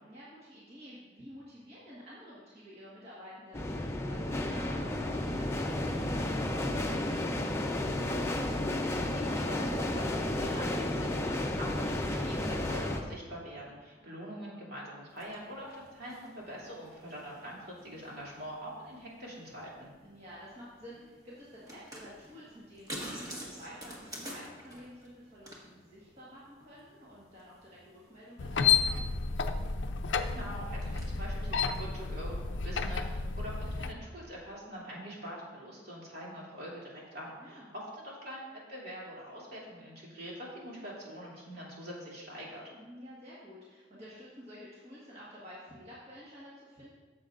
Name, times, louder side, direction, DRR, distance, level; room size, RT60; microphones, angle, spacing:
voice 1, 0.0-7.7 14.0-14.2 20.0-29.0 37.4-37.7 42.7-46.9, equal, 35° right, -8 dB, 1.7 m, -50 dB
sound 1, 3.5-13.0, left 1 dB, 15° left, 0.6 m, -32 dB
voice 2, 8.9-19.9 30.3-42.6, equal, 55° right, -5 dB, 2.9 m, -44 dB
sound 2, 15.1-31.8, right 1 dB, 20° right, 1.5 m, -50 dB
sound 3, 28.4-33.9, left 5 dB, 90° left, 0.5 m, -31 dB
14.0 x 7.4 x 2.6 m, 1.3 s
head